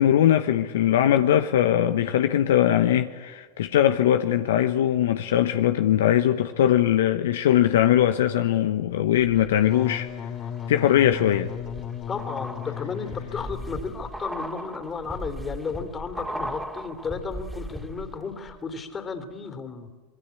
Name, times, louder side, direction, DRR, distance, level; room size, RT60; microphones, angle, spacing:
voice 1, 0.0-10.1 10.7-11.5, left 11 dB, 70° left, 1.0 m, -21 dB
sound 1, 9.2-9.9 10.4-18.2 18.5-18.6, right 1 dB, 5° right, 2.7 m, -38 dB
Wind instrument woodwind instrument, 9.6-14.2, left 9 dB, 45° left, 2.4 m, -35 dB
voice 2, 12.1-19.9, left 5 dB, 25° left, 3.3 m, -33 dB
25.5 x 22.0 x 8.5 m
hypercardioid pair, 85°, 0 cm